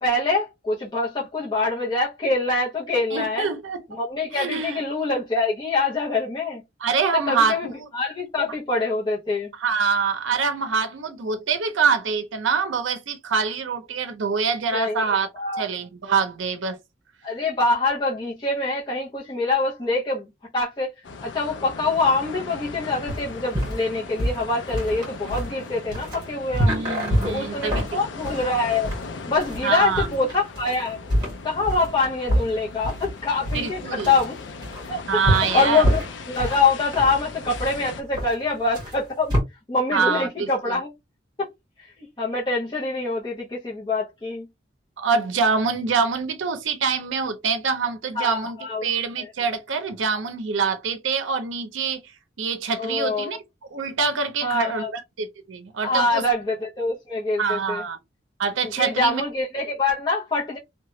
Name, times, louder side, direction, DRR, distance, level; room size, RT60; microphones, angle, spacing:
voice 1, 0.0-3.5 4.0-6.6 7.3-9.5 14.7-15.7 17.2-20.3 20.5-20.9 21.2-26.8 27.2-28.9 29.3-31.0 31.4-34.4 34.9-35.0 35.3-39.3 39.7-40.9 41.4-41.5 41.8-44.5 48.2-48.9 49.2-49.3 52.8-53.3 54.4-54.9 55.8-57.8 58.6-60.6, left 3 dB, 25° left, 0.7 m, -25 dB
voice 2, 3.1-3.8 4.3-4.8 6.8-7.7 9.6-15.3 15.6-16.8 26.6-27.9 29.6-30.1 33.5-34.1 35.1-35.8 39.9-40.8 45.0-48.6 48.8-52.0 52.4-53.4 53.7-56.2 57.4-58.0 58.4-59.2, right 5 dB, 90° right, 0.6 m, -25 dB
sound 1, 21.0-38.0, left 4 dB, 75° left, 0.5 m, -39 dB
sound 2, 23.1-39.4, equal, 25° right, 1.6 m, -27 dB
2.8 x 2.2 x 3.0 m
head